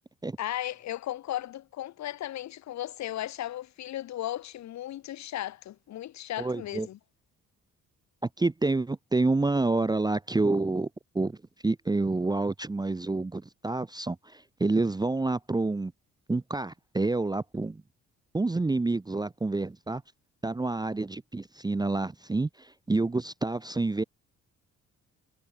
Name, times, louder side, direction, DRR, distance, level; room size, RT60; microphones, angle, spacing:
voice 1, 0.4-7.0, left 13 dB, 65° left, 0.9 m, -36 dB
voice 2, 6.4-6.9 8.4-10.9 11.1-11.4 11.6-15.9 16.3-17.8 18.3-20.0 20.4-24.0, right 3 dB, 15° right, 0.7 m, -28 dB
cardioid pair, 90°, 30 cm